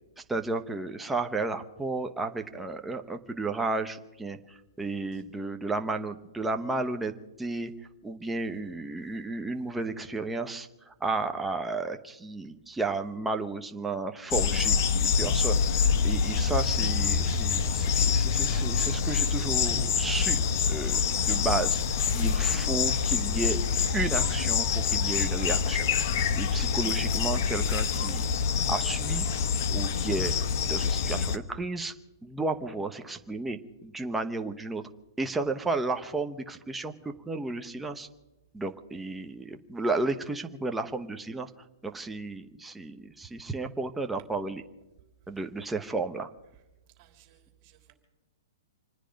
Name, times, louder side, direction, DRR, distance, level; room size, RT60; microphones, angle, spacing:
voice 1, 0.2-7.1 7.4-7.7 8.0-20.4 20.7-21.8 22.1-23.6 23.9-24.7 24.9-25.9 26.3-28.2 28.7-29.2 29.7-30.3 30.6-31.9 32.2-34.8 35.2-38.1 38.5-41.5 41.8-44.6 45.3-46.3, right 3 dB, 5° right, 5 dB, 0.9 m, -33 dB
sound 1, 14.3-31.4, left 6 dB, 50° left, 1.1 m, -26 dB
voice 2, 47.0-47.9, right 12 dB, 35° right, 4 dB, 3.4 m, -60 dB
27.5 x 9.9 x 5.2 m, 1.0 s
hypercardioid pair, 155°, 2 cm